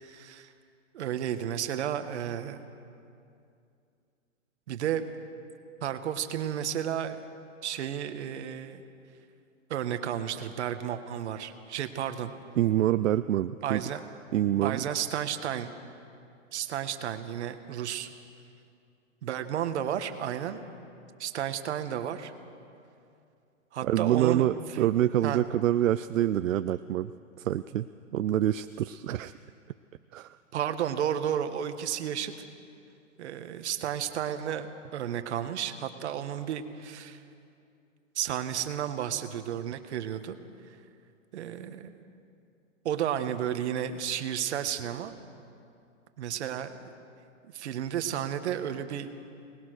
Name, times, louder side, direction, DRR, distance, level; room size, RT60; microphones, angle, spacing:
voice 1, 0.0-0.5 0.9-2.6 4.7-5.0 5.8-7.2 7.6-8.8 9.7-12.3 13.6-14.0 14.6-15.7 16.5-18.1 19.2-20.6 21.2-22.3 23.7-24.5 24.7-24.9 25.2-25.4 30.5-32.3 33.2-37.2 38.1-40.4 41.3-42.0 42.8-45.1 46.2-46.7 47.5-49.1, right 10 dB, 60° right, 9 dB, 1.6 m, -32 dB
voice 2, 12.6-13.8 14.3-14.8 23.8-27.1 27.4-27.9 28.1-29.3 30.1-30.4, right 12 dB, 75° right, 12 dB, 0.6 m, -26 dB
24.0 x 20.0 x 6.5 m, 2.5 s
hypercardioid pair, 150°, 39 cm